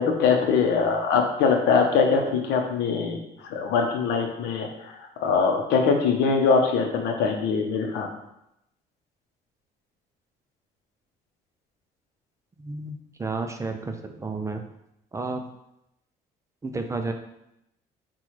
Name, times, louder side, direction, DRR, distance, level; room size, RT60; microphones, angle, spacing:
voice 1, 0.0-3.2 3.5-8.1, left 5 dB, 85° left, 3 dB, 0.7 m, -22 dB
voice 2, 12.6-14.6 15.1-15.4 16.6-17.1, right 3 dB, 20° right, 5 dB, 0.4 m, -31 dB
5.6 x 2.3 x 3.1 m, 0.82 s
cardioid pair, 110°, 17 cm